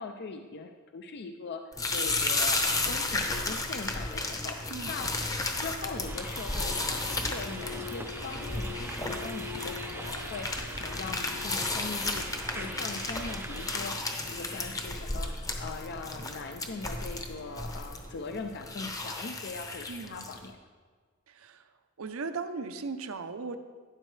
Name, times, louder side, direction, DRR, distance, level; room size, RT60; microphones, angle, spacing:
voice 1, 0.0-5.1 5.5-15.3 15.6-20.6, left 4 dB, 55° left, 6 dB, 0.5 m, -41 dB
sound 1, 1.7-20.5, left 2 dB, 15° left, 0.8 m, -33 dB
sound 2, 2.4-19.0, left 8 dB, 80° left, 0.9 m, -49 dB
voice 2, 4.7-5.1 19.9-20.3 21.3-21.7 22.0-23.6, right 4 dB, 75° right, 10 dB, 0.7 m, -38 dB
sound 3, 6.1-13.8, right 2 dB, 10° right, 0.6 m, -42 dB
12.0 x 9.8 x 3.3 m, 1.5 s
head